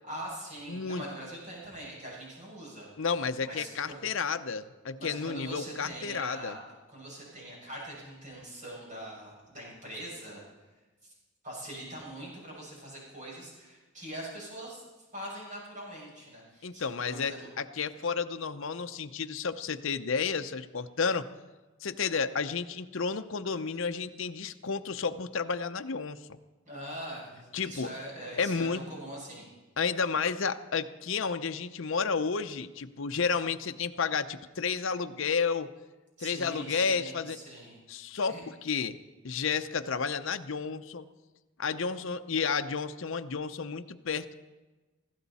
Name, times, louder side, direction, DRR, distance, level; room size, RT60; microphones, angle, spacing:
voice 1, 0.1-2.9 3.4-4.0 5.0-6.6 6.9-10.4 11.0-11.1 11.4-14.8 15.1-17.4 26.7-29.5 36.2-37.8 38.3-38.4, right 1 dB, 35° right, -5 dB, 6.3 m, -42 dB
voice 2, 0.7-1.0 3.0-6.6 16.6-21.3 21.8-26.4 27.5-27.9 28.4-28.8 29.8-35.7 36.2-37.4 37.9-39.0 39.2-41.1 41.6-44.3, left 5 dB, 60° left, 9 dB, 0.7 m, -31 dB
20.0 x 15.5 x 4.2 m, 1.2 s
head